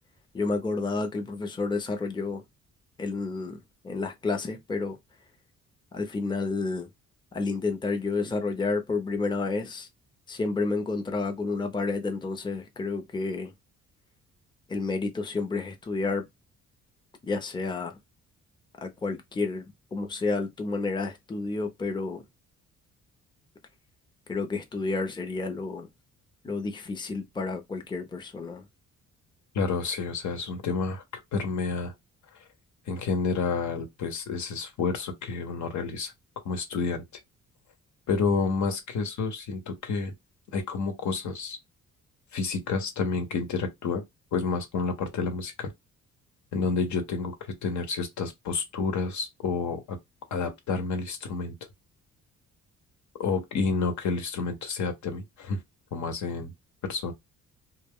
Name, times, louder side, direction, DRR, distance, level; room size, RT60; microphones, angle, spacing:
voice 1, 0.3-2.4 3.0-5.0 5.9-6.9 7.3-9.9 10.3-13.5 14.7-16.3 17.2-18.0 18.8-19.6 19.9-22.2 24.3-25.9 26.4-28.6, left 3 dB, 15° left, 0.6 m, -30 dB
voice 2, 29.5-31.0 31.3-31.9 32.3-32.4 32.9-36.1 36.4-37.0 38.1-40.1 40.5-41.6 42.3-44.0 44.3-45.7 46.5-47.3 47.6-50.0 50.3-51.5 53.2-55.6 55.9-56.5 56.9-57.1, left 4 dB, 70° left, 1.0 m, -29 dB
2.3 x 2.1 x 3.5 m
cardioid pair, 90°, 30 cm